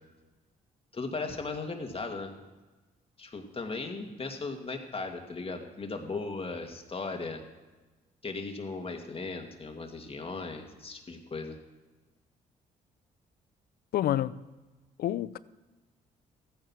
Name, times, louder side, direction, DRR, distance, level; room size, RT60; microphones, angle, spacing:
voice 1, 0.9-2.3 3.2-7.4 8.2-11.6, left 3 dB, 35° left, 2.3 m, -37 dB
voice 2, 13.9-14.4 15.0-15.4, left 12 dB, 65° left, 0.5 m, -28 dB
14.0 x 9.6 x 6.2 m
supercardioid pair, 55°, 17 cm